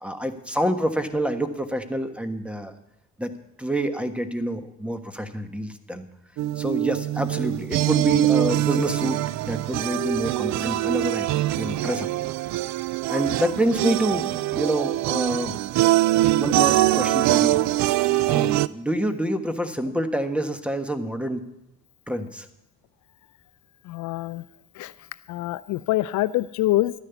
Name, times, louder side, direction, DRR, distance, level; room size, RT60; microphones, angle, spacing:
voice 1, 0.0-2.7 3.2-3.3 3.6-6.0 6.6-9.2 9.4-12.1 13.1-15.6 16.4-17.6 18.3-21.4 22.1-22.5, right 1 dB, 5° right, 9 dB, 1.3 m, -27 dB
sound 1, 6.4-18.7, right 15 dB, 60° right, 0.5 m, -23 dB
voice 2, 23.9-24.4 24.8-24.9 25.3-26.9, left 16 dB, 65° left, 15 dB, 0.5 m, -25 dB
12.5 x 9.8 x 7.0 m, 0.87 s
supercardioid pair, 85°, 32 cm